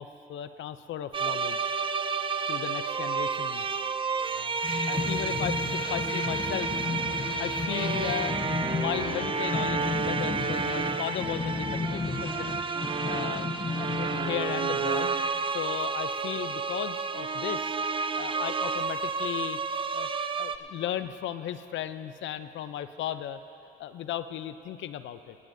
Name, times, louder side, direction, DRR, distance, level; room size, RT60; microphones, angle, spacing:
voice 1, 0.0-1.6 2.5-3.7 4.3-6.8 7.1-8.4 8.7-12.6 13.0-13.5 13.7-15.1 15.5-17.8 18.2-19.6 19.9-20.1 20.4-23.4 23.8-25.4, left 11 dB, 75° left, 12 dB, 0.5 m, -36 dB
sound 1, 1.1-20.6, right 4 dB, 25° right, 0.5 m, -31 dB
sound 2, 4.6-15.2, left 3 dB, 25° left, 1.0 m, -33 dB
19.0 x 16.5 x 2.7 m, 2.9 s
cardioid pair, 90°, 20 cm